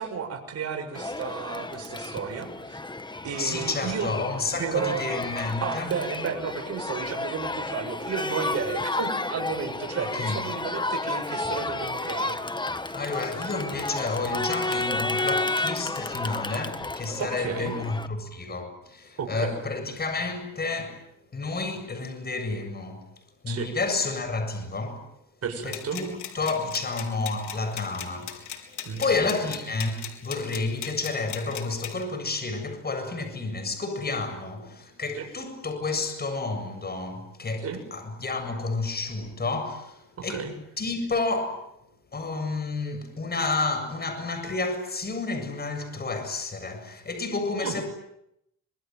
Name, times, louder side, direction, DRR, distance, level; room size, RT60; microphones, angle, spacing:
voice 1, 0.0-2.8 3.2-4.1 4.6-5.0 5.6-12.4 17.2-17.8 19.2-19.6 23.5-23.7 25.4-26.0 28.8-29.0 35.2-35.3 37.6-37.8 40.2-40.5 47.6-47.7, right 6 dB, 55° right, 7.2 m, -32 dB
Crowd, 0.9-18.1, left 2 dB, 15° left, 1.6 m, -32 dB
voice 2, 3.4-5.9 10.0-10.4 12.9-21.0 21.3-23.1 23.4-25.1 25.6-40.5 40.8-41.7 42.1-47.8, left 3 dB, 30° left, 7.6 m, -30 dB
sound 1, 25.7-32.0, left 9 dB, 75° left, 4.3 m, -39 dB
26.0 x 23.5 x 9.4 m
cardioid pair, 90°, 30 cm